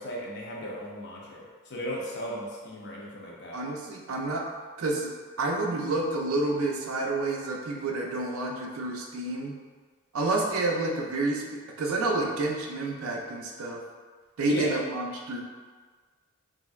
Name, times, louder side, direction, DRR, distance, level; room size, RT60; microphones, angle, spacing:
voice 1, 0.0-3.6 14.4-14.8, equal, 50° left, -3 dB, 0.6 m, -36 dB
voice 2, 3.5-4.4 4.8-9.6 10.1-13.8 14.4-15.4, right 2 dB, 65° right, 0 dB, 0.4 m, -29 dB
3.1 x 2.6 x 2.3 m, 1.5 s
head